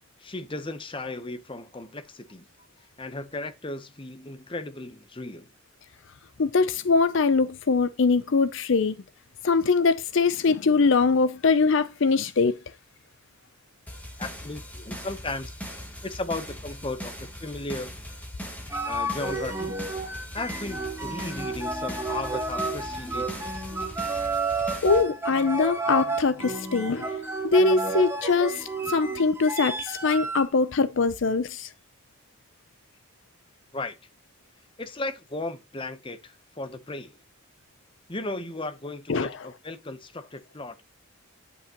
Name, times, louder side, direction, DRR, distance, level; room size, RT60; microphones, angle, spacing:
voice 1, 0.2-2.5 3.0-5.5 14.2-15.5 16.0-17.9 18.8-19.8 20.3-23.6 33.7-34.0 34.8-37.2 38.1-40.8, left 2 dB, 25° left, 0.8 m, -36 dB
voice 2, 6.4-8.9 9.4-12.6 24.8-27.1 27.5-31.7 39.1-39.3, left 4 dB, 60° left, 0.5 m, -22 dB
sound 1, 13.9-25.0, equal, 5° left, 1.8 m, -40 dB
sound 2, 18.7-30.5, right 3 dB, 10° right, 1.1 m, -31 dB
9.8 x 5.5 x 2.9 m
head